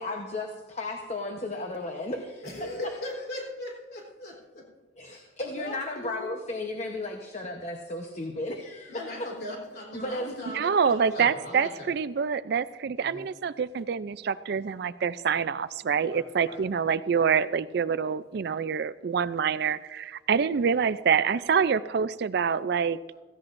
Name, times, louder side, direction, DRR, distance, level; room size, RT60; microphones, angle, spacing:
voice 1, 0.0-2.7 5.0-9.3 9.9-10.3, left 2 dB, 35° left, 3 dB, 0.9 m, -34 dB
voice 2, 2.4-4.7 5.0-5.3 5.5-6.3 8.9-11.9 13.0-13.3 16.0-16.6, left 1 dB, 55° left, -1 dB, 3.6 m, -39 dB
voice 3, 10.5-23.0, right 6 dB, 60° right, 16 dB, 0.4 m, -26 dB
16.5 x 15.5 x 2.6 m, 1.3 s
head